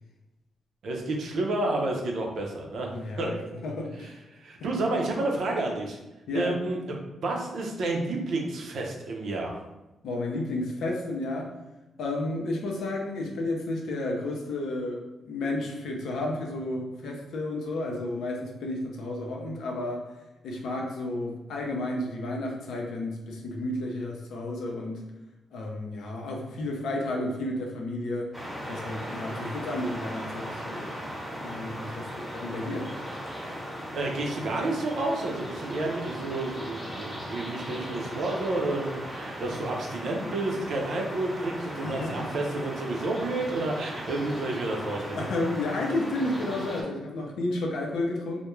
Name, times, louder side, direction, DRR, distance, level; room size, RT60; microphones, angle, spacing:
voice 1, 0.8-3.3 4.4-6.0 6.3-9.6 33.9-45.3, right 2 dB, 70° right, 0 dB, 0.5 m, -30 dB
voice 2, 2.9-3.4 3.6-4.2 4.6-4.7 6.3-6.6 10.0-11.5 12.0-20.1 20.4-25.0 25.5-28.3 28.7-30.9 31.3-32.9 37.7-37.8 41.8-42.3 45.1-48.4, left 2 dB, 80° left, 0 dB, 0.5 m, -32 dB
sound 1, 28.3-46.8, equal, 5° right, 0.9 m, -37 dB
2.2 x 2.1 x 3.0 m, 1.0 s
supercardioid pair, 55°, 0 cm